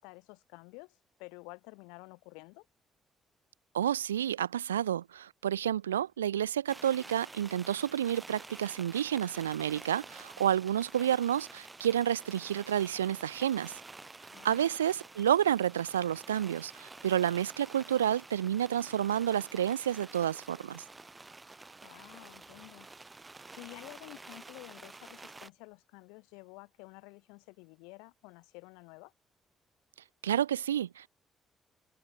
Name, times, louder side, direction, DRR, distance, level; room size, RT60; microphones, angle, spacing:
voice 1, 0.0-2.7 14.3-14.6 21.8-22.9 23.6-29.1, left 31 dB, 75° left, 4.1 m, -51 dB
voice 2, 3.7-13.8 14.4-20.8 30.2-31.1, right 10 dB, 85° right, 0.3 m, -30 dB
sound 1, 6.7-25.5, right 3 dB, 25° right, 0.9 m, -50 dB
figure-of-eight pair, 45°, 0 cm